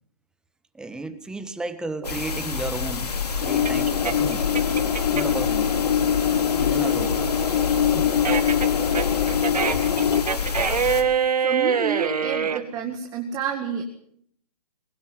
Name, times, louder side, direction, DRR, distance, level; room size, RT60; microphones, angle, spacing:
voice 1, 0.7-4.4 5.1-5.7 6.6-8.1, right 2 dB, 5° right, 10 dB, 1.3 m, -34 dB
sound 1, 2.0-11.0, left 5 dB, 85° left, 3.7 m, -29 dB
sound 2, 2.0-5.5 5.9-12.6, right 6 dB, 90° right, 2.2 m, -26 dB
sound 3, 3.4-10.2, left 9 dB, 55° left, 3.5 m, -23 dB
voice 2, 11.4-13.8, right 8 dB, 20° right, 3 dB, 2.2 m, -29 dB
21.5 x 17.5 x 7.8 m, 0.66 s
hypercardioid pair, 150°, 20 cm